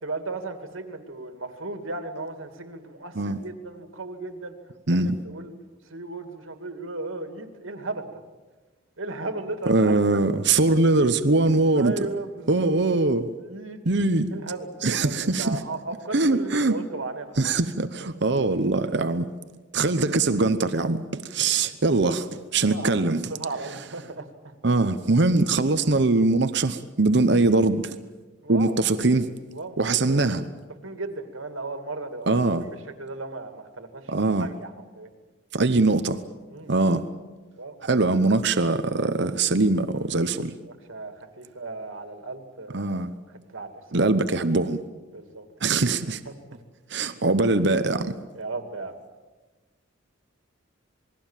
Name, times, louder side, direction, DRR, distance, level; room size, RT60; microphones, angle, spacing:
voice 1, 0.0-4.5 4.9-5.5 5.9-8.1 9.0-10.0 11.7-12.7 13.4-13.8 14.3-17.6 19.0-19.1 22.6-24.5 28.4-28.8 29.5-29.8 30.1-30.3 30.8-32.4 32.8-34.1 34.4-35.1 36.5-36.7 37.6-37.8 40.9-43.0 43.5-43.7 45.1-45.5 46.3-46.6 48.3-49.0, right 3 dB, 85° right, 7 dB, 2.6 m, -35 dB
voice 2, 4.9-5.2 9.7-12.0 12.5-13.3 13.8-14.3 14.8-15.6 16.1-16.8 17.4-19.3 19.7-23.3 24.6-28.0 28.5-29.3 29.8-30.4 32.3-32.7 34.1-34.5 35.5-36.2 36.7-37.0 37.8-40.5 42.7-43.1 43.9-44.8 45.6-46.2 46.9-48.2, right 3 dB, 60° right, 10 dB, 0.9 m, -22 dB
28.0 x 20.5 x 7.4 m, 1.3 s
head